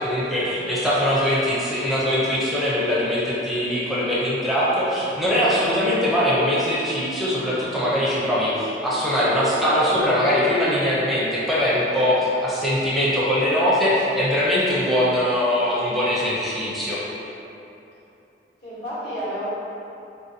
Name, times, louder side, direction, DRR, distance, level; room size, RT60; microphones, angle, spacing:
voice 1, 0.0-17.0, equal, ahead, -9 dB, 0.5 m, -22 dB
voice 2, 18.6-19.4, equal, 65° left, -12 dB, 1.2 m, -32 dB
3.7 x 2.6 x 2.6 m, 2.9 s
head